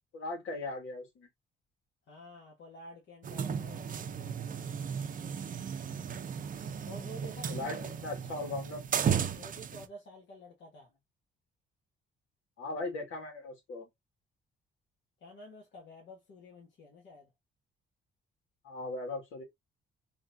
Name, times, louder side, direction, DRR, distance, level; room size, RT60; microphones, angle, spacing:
voice 1, 0.1-1.3 7.5-8.8 12.6-13.9 18.6-19.4, left 2 dB, 85° left, 2.0 m, -38 dB
voice 2, 2.1-4.0 6.9-7.8 9.4-10.9 15.2-17.3, left 1 dB, 65° left, 1.4 m, -50 dB
sound 1, 3.2-9.9, right 7 dB, 45° right, 0.6 m, -35 dB
3.9 x 3.1 x 2.6 m
cardioid pair, 90°, 20 cm